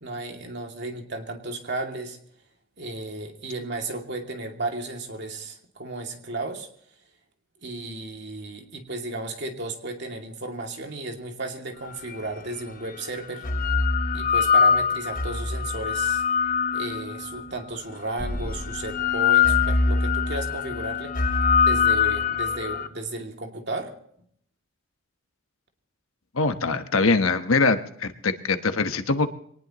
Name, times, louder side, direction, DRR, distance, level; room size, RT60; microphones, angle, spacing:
voice 1, 0.0-2.2 2.8-6.7 7.6-13.5 14.1-16.2 16.7-21.1 21.6-23.9, right 2 dB, 50° right, 3 dB, 2.6 m, -34 dB
sound 1, 12.1-12.2 13.2-17.4 18.2-22.9, left 6 dB, 40° left, 1.1 m, -23 dB
voice 2, 26.3-29.3, left 3 dB, 75° left, 8 dB, 1.2 m, -23 dB
24.0 x 19.0 x 3.1 m, 0.65 s
head